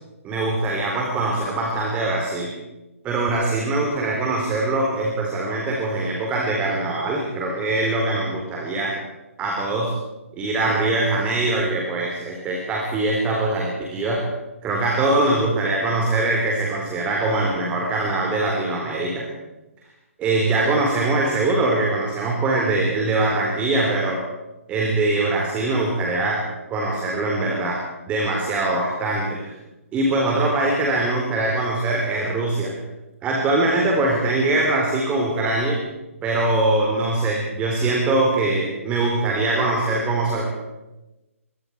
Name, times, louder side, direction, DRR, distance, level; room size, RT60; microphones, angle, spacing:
voice 1, 0.2-2.5 3.0-8.9 9.4-9.9 10.3-14.3 14.6-19.2 20.2-24.2 24.7-26.4 26.7-27.8 28.1-29.5 29.9-32.7 33.2-35.8 36.2-40.5, right 2 dB, 15° right, -1 dB, 3.8 m, -22 dB
25.0 x 23.0 x 4.7 m, 1.0 s
figure-of-eight pair, 130°, 8 cm